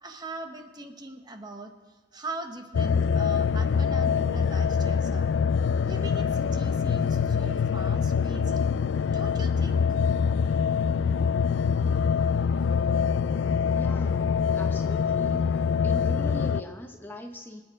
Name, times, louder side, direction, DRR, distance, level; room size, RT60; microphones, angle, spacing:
voice 1, 0.0-1.7 2.1-5.4 5.8-8.5 9.0-9.8, right 2 dB, 20° right, 5 dB, 1.0 m, -41 dB
sound 1, 2.7-16.6, left 6 dB, 85° left, 0.4 m, -24 dB
voice 2, 13.8-15.5 15.8-17.6, left 1 dB, 10° left, 4 dB, 0.8 m, -41 dB
24.5 x 8.8 x 4.8 m, 1.3 s
head